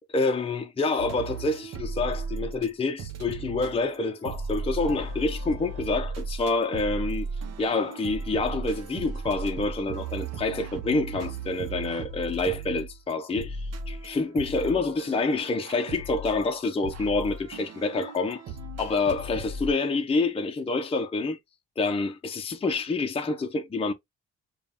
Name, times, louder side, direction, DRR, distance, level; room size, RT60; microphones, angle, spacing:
voice 1, 0.1-7.3 7.6-18.4 18.8-21.4 21.8-23.9, left 3 dB, 20° left, 0.5 m, -27 dB
sound 1, 1.0-2.7 3.0-19.7, right 3 dB, 60° right, 0.9 m, -36 dB
5.1 x 2.3 x 2.9 m
cardioid pair, 90°, 30 cm